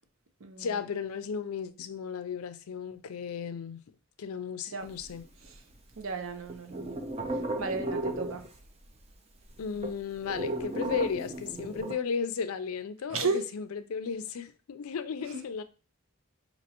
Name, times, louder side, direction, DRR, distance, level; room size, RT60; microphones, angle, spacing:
voice 1, 0.6-3.8 4.2-5.2 9.6-15.6, left 6 dB, 90° left, 0.4 m, -35 dB
sound 1, 4.8-6.0 6.3-8.9 9.1-9.2 9.4-11.9, right 1 dB, 30° right, 0.5 m, -35 dB
voice 2, 6.0-7.0 7.6-8.4 13.1-13.5, right 4 dB, 75° right, 0.6 m, -33 dB
5.2 x 2.8 x 2.9 m
head